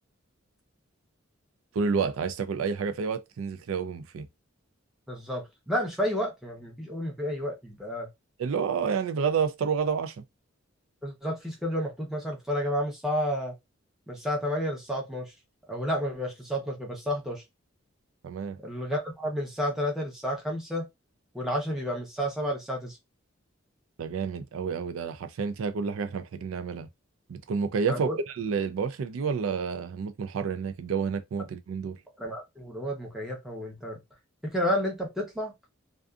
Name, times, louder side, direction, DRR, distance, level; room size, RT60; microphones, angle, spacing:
voice 1, 1.7-4.3 8.4-10.2 18.2-18.6 24.0-26.9 27.3-28.1 28.4-32.0, right 6 dB, 85° right, 0.4 m, -29 dB
voice 2, 5.1-8.1 11.0-13.5 14.1-15.3 15.7-17.4 18.6-20.8 21.3-23.0 27.9-28.2 32.2-34.0 34.4-35.5, equal, ahead, 0.8 m, -31 dB
2.5 x 2.4 x 2.3 m
head